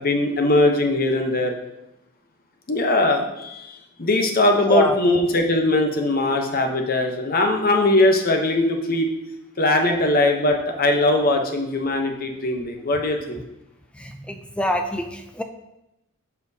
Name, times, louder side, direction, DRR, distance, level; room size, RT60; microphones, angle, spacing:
voice 1, 0.0-1.6 2.7-9.1 9.6-13.4, left 2 dB, 40° left, 4 dB, 0.9 m, -20 dB
voice 2, 14.0-15.4, left 1 dB, 5° left, 5 dB, 0.4 m, -25 dB
12.0 x 4.3 x 2.8 m, 0.93 s
head